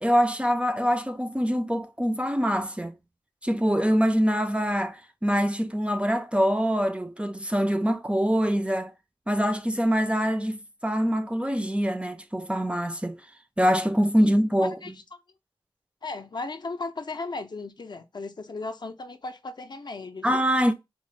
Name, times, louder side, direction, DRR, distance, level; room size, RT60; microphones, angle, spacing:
voice 1, 0.0-2.9 3.4-8.9 9.3-13.2 13.6-14.8 20.2-20.7, equal, 10° right, 0.4 m, -24 dB
voice 2, 16.0-20.3, left 3 dB, 50° left, 0.4 m, -36 dB
4.1 x 2.0 x 3.1 m
wide cardioid pair, 75°, 10 cm